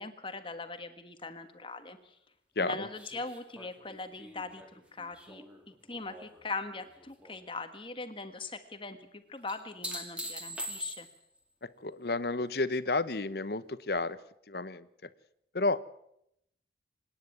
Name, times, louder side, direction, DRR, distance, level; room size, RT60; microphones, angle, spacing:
voice 1, 0.0-2.2 2.6-11.1, left 3 dB, 30° left, 8 dB, 1.5 m, -41 dB
voice 2, 2.6-2.9 11.6-14.2 14.5-14.9 15.5-15.8, left 3 dB, 60° left, 14 dB, 1.0 m, -31 dB
sound 1, 2.9-6.4 6.8-7.4 9.5-11.4 14.0-14.1, equal, 5° right, 2.6 m, -43 dB
26.0 x 10.0 x 9.8 m, 0.77 s
head